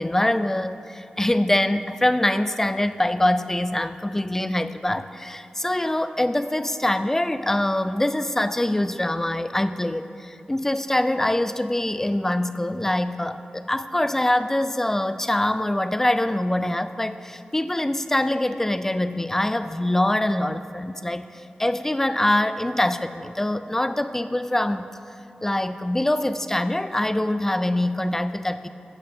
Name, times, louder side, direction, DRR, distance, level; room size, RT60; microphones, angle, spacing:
voice 1, 0.0-24.8 25.4-28.7, left 1 dB, 15° left, 11 dB, 0.4 m, -24 dB
13.0 x 7.5 x 3.3 m, 2.8 s
wide cardioid pair, 75°, 3 cm